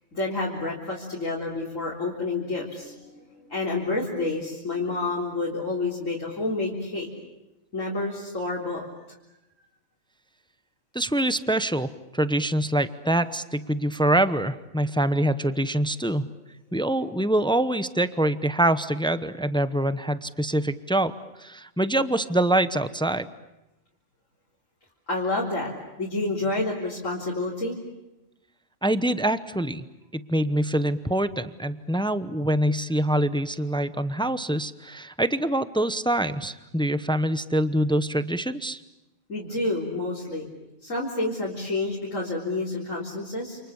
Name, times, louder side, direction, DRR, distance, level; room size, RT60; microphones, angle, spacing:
voice 1, 0.1-7.1 7.7-8.8 25.1-25.7 26.0-27.8 39.3-40.5 40.8-43.6, left 2 dB, 85° left, -4 dB, 4.3 m, -29 dB
voice 2, 10.9-16.3 16.7-21.1 21.4-23.3 28.8-29.9 30.1-38.8, right 1 dB, 5° left, 12 dB, 0.7 m, -25 dB
29.0 x 28.5 x 7.2 m, 0.96 s
omnidirectional pair, 1.3 m